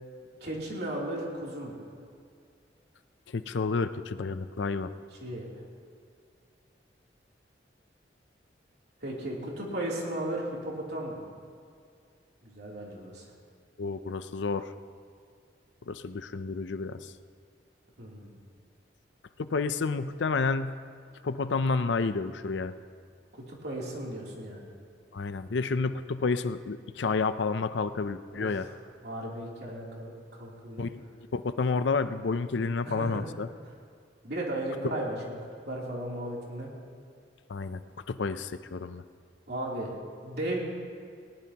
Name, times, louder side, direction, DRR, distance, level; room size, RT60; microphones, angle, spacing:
voice 1, 0.4-1.8 5.2-5.5 9.0-11.2 12.4-13.3 18.0-18.4 23.4-24.7 28.3-28.7 29.0-30.9 32.9-33.3 34.2-35.4 35.7-36.7 39.5-40.6, right 1 dB, 65° right, -3 dB, 3.2 m, -35 dB
voice 2, 3.3-4.9 13.8-14.7 15.9-17.1 19.4-20.8 21.2-22.7 25.1-28.7 30.8-31.0 31.3-33.5 34.8-35.0 37.5-39.0, left 4 dB, 80° left, 11 dB, 0.5 m, -30 dB
19.5 x 18.5 x 2.9 m, 2.3 s
head